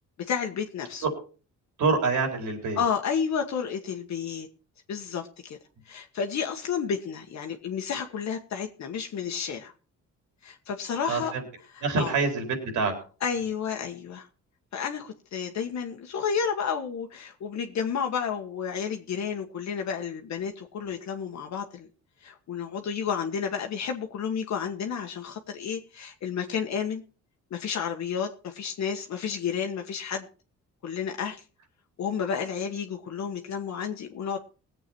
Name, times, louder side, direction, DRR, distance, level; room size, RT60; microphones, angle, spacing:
voice 1, 0.3-1.0 2.8-4.5 4.9-5.6 5.9-9.7 10.4-11.3 11.7-12.1 13.2-14.3 14.7-21.9 22.2-27.0 27.5-30.3 30.8-31.4 32.0-34.4, left 7 dB, 65° left, 3 dB, 1.4 m, -31 dB
voice 2, 1.8-2.8 11.1-11.4 11.8-12.9, right 4 dB, 80° right, 4 dB, 4.5 m, -26 dB
19.0 x 7.9 x 4.5 m, 0.36 s
cardioid pair, 90°, 30 cm